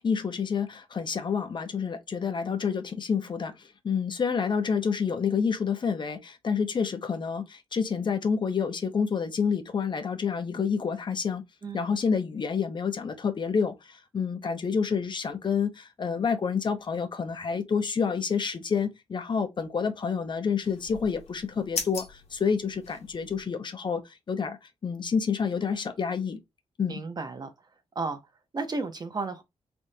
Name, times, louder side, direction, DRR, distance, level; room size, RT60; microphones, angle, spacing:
voice 1, 0.0-11.4 11.7-26.4 26.8-27.0, left 6 dB, 45° left, 0.6 m, -28 dB
sound 1, 20.6-23.4, left 4 dB, 70° left, 1.1 m, -39 dB
voice 2, 26.9-27.5 27.9-28.2 28.5-29.4, right 3 dB, 35° right, 0.7 m, -33 dB
3.5 x 2.5 x 2.7 m
cardioid pair, 80°, 11 cm